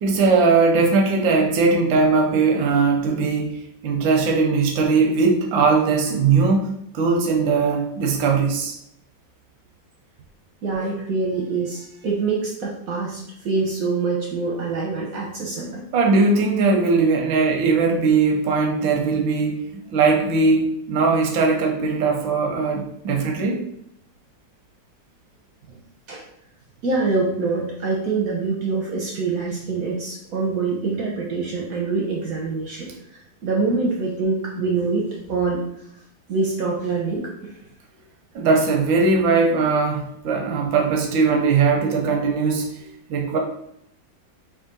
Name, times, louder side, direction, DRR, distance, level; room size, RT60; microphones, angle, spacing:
voice 1, 0.0-8.7 15.9-23.7 38.3-43.4, right 4 dB, 90° right, 1 dB, 1.4 m, -20 dB
voice 2, 10.6-15.8 25.7-25.8 26.1-26.2 26.8-35.6 36.3-37.6, right 4 dB, 65° right, -2 dB, 0.9 m, -25 dB
3.5 x 2.6 x 3.9 m, 0.74 s
omnidirectional pair, 2.0 m